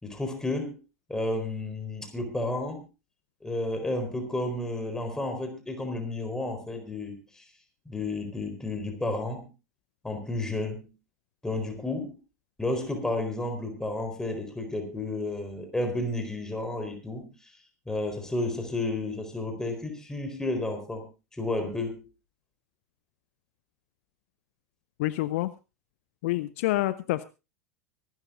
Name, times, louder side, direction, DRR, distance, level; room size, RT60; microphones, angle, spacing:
voice 1, 0.0-0.8 1.1-2.8 3.4-7.4 7.9-9.5 10.0-10.9 11.4-12.1 12.6-17.3 17.9-21.1 21.4-22.1, left 2 dB, 5° left, 6 dB, 4.3 m, -32 dB
voice 2, 25.0-25.5 26.2-27.2, left 17 dB, 55° left, 16 dB, 0.7 m, -27 dB
24.5 x 12.5 x 2.6 m, 0.29 s
figure-of-eight pair, 85°, 8 cm